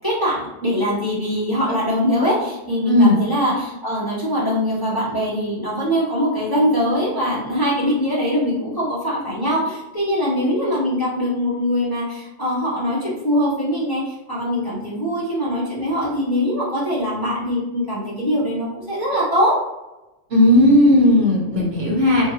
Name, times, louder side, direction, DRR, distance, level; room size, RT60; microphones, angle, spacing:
voice 1, 0.0-19.5, equal, 20° left, -9 dB, 1.0 m, -22 dB
voice 2, 2.9-3.2 20.3-22.3, left 1 dB, 55° right, -4 dB, 1.0 m, -15 dB
3.8 x 2.5 x 2.8 m, 0.99 s
omnidirectional pair, 1.3 m